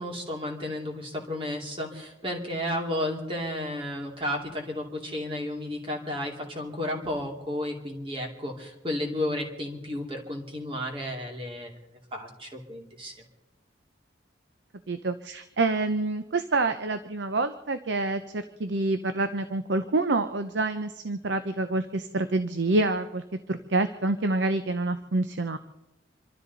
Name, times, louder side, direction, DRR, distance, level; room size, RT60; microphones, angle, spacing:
voice 1, 0.0-11.8 12.1-13.1, left 1 dB, 30° right, 1 dB, 2.5 m, -33 dB
voice 2, 14.9-25.6, right 2 dB, 75° right, 10 dB, 0.7 m, -27 dB
27.0 x 13.0 x 4.1 m, 0.93 s
head